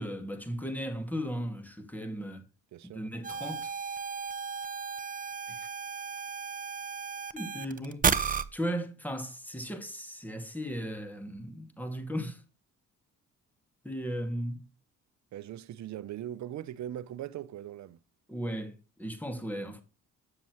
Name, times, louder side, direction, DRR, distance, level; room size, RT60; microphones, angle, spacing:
voice 1, 0.0-2.4 2.8-3.7 5.5-5.7 7.3-12.4 13.8-14.7 18.3-19.8, equal, 5° left, 2.1 m, -36 dB
voice 2, 2.7-3.0 15.3-18.0, right 11 dB, 65° right, 0.7 m, -40 dB
sound 1, 3.2-8.4, right 6 dB, 25° right, 0.7 m, -33 dB
9.0 x 7.1 x 3.1 m
cardioid pair, 90°, 30 cm